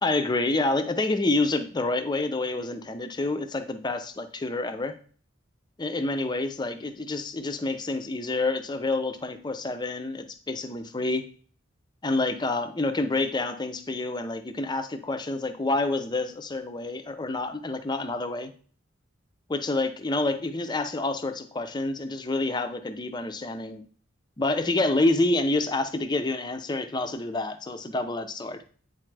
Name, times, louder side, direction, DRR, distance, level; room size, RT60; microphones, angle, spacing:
voice 1, 0.0-5.0 5.8-11.2 12.0-18.5 19.5-23.8 24.4-28.6, left 2 dB, 20° left, 8 dB, 0.5 m, -28 dB
8.7 x 4.2 x 3.3 m, 0.43 s
head